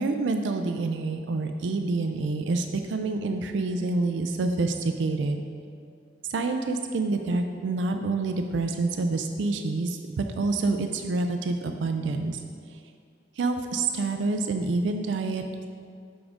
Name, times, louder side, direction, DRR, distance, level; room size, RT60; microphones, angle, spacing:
voice 1, 0.0-5.4 6.3-12.4 13.4-15.7, right 3 dB, 80° right, 6 dB, 0.4 m, -27 dB
7.1 x 4.9 x 3.6 m, 2.2 s
head